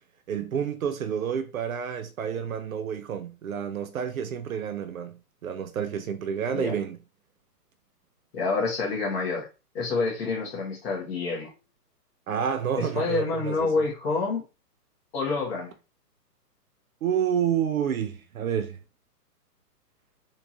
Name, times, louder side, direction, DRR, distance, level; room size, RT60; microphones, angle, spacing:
voice 1, 0.3-7.0 12.3-13.9 17.0-18.8, right 8 dB, 60° right, 0.6 m, -29 dB
voice 2, 6.5-6.8 8.3-9.4 9.7-11.5 12.7-14.4 15.1-15.7, left 4 dB, 35° left, 1.5 m, -28 dB
3.6 x 2.7 x 2.9 m
hypercardioid pair, 130°, 49 cm